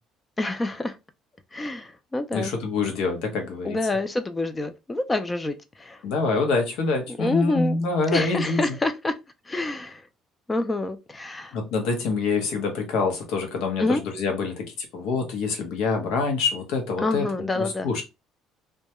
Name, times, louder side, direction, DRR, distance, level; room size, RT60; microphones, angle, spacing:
voice 1, 0.4-1.0 1.5-2.5 3.6-6.0 7.2-7.8 8.1-9.1 9.5-10.0 10.5-11.6 13.8-14.0 17.0-18.0, left 2 dB, 15° left, 0.3 m, -27 dB
voice 2, 2.3-3.8 6.0-8.7 11.5-18.0, left 4 dB, 80° left, 0.8 m, -26 dB
2.2 x 2.1 x 2.8 m
cardioid pair, 120°, 0 cm